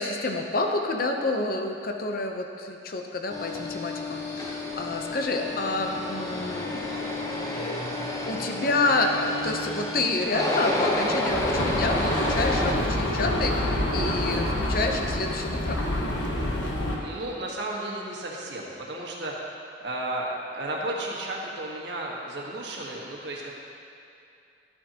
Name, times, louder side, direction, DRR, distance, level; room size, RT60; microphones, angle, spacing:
voice 1, 0.0-6.8 7.5-7.8 8.3-15.8, left 3 dB, 50° left, 3 dB, 0.7 m, -28 dB
sound 1, 3.3-12.7, left 1 dB, 15° left, 0.8 m, -30 dB
sound 2, 11.3-17.0, left 1 dB, 80° left, 1.4 m, -27 dB
voice 2, 17.0-19.3 19.8-23.5, right 1 dB, 65° right, -3 dB, 1.5 m, -33 dB
12.5 x 8.9 x 2.9 m, 2.5 s
head